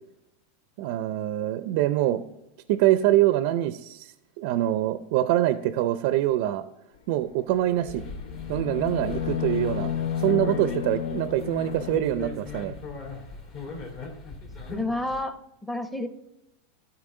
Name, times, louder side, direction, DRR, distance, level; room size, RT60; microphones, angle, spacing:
voice 1, 0.8-2.2 2.7-4.1 4.4-6.6 7.1-8.1 8.5-9.9 10.2-12.7, right 13 dB, 60° right, 11 dB, 0.4 m, -24 dB
sound 1, 7.6-12.0, left 8 dB, 90° left, 0.5 m, -31 dB
sound 2, 7.9-15.2, left 3 dB, 50° left, 2.5 m, -39 dB
voice 2, 14.7-16.1, left 2 dB, 5° left, 9 dB, 0.8 m, -30 dB
12.0 x 4.7 x 3.7 m, 0.89 s
supercardioid pair, 125°, 0 cm